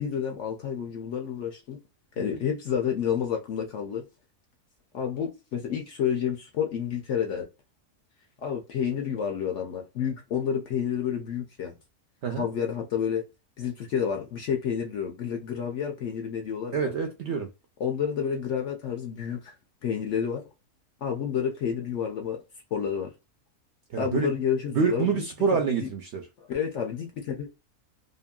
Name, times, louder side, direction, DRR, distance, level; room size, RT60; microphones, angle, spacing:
voice 1, 0.0-1.8 2.2-4.0 4.9-7.5 8.4-11.8 12.4-13.2 13.6-16.9 17.8-19.5 19.8-20.4 21.0-22.4 22.7-23.1 24.0-25.2 25.8-25.9 26.4-27.5, left 8 dB, 60° left, 0.8 m, -29 dB
voice 2, 16.7-17.5 23.9-24.3 24.7-26.3, right 5 dB, 70° right, 0.6 m, -27 dB
2.8 x 2.6 x 2.2 m
omnidirectional pair, 1.6 m